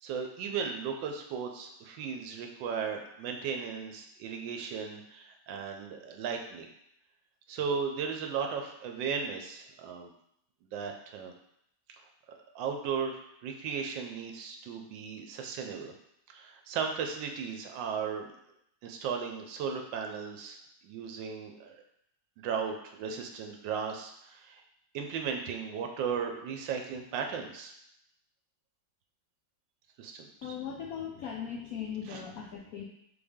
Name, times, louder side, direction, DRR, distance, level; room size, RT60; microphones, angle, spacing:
voice 1, 0.0-6.7 7.5-10.1 10.7-11.3 12.5-15.9 16.3-18.3 18.8-20.6 20.8-21.7 22.4-24.6 24.9-27.7 30.0-30.6 32.1-32.2, right 6 dB, 75° right, 3 dB, 1.2 m, -36 dB
voice 2, 30.4-32.8, left 8 dB, 90° left, -1 dB, 0.7 m, -39 dB
4.1 x 3.4 x 3.5 m, 0.77 s
omnidirectional pair, 2.1 m